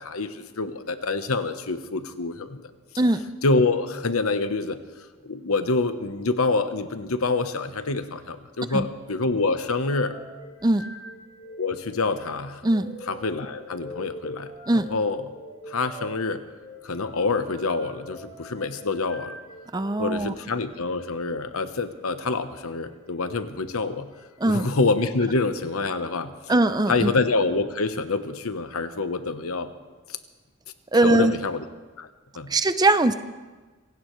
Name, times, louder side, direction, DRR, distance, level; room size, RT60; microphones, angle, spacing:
voice 1, 0.0-2.7 3.4-4.8 5.2-10.1 11.6-12.7 13.1-14.5 14.9-15.2 15.7-16.4 16.8-19.4 20.0-24.1 24.4-26.3 26.9-29.7 30.1-30.2 31.0-31.6 32.0-32.1 32.3-32.5, left 3 dB, 85° left, 10 dB, 1.0 m, -26 dB
sound 1, 10.0-20.0 20.7-21.0 23.0-23.3 24.1-24.6 25.2-25.5 26.3-26.8 27.3-28.3, left 1 dB, 30° left, 6.7 m, -44 dB
voice 2, 19.7-20.3 24.4-24.7 26.5-27.1 30.9-31.3 32.5-33.1, right 2 dB, 20° right, 11 dB, 0.5 m, -21 dB
26.0 x 17.0 x 3.2 m, 1.3 s
head